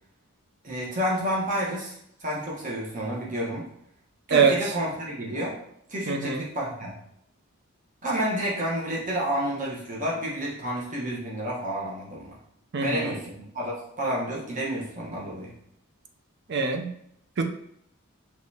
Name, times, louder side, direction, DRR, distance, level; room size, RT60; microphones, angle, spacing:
voice 1, 0.6-3.6 4.3-5.6 5.9-6.9 8.0-12.3 12.8-15.5, equal, 35° right, -5 dB, 1.1 m, -30 dB
voice 2, 6.1-6.4 12.7-13.1 16.5-16.9 17.4-17.5, right 5 dB, 50° right, 4 dB, 0.5 m, -23 dB
5.3 x 3.1 x 2.8 m, 0.73 s
head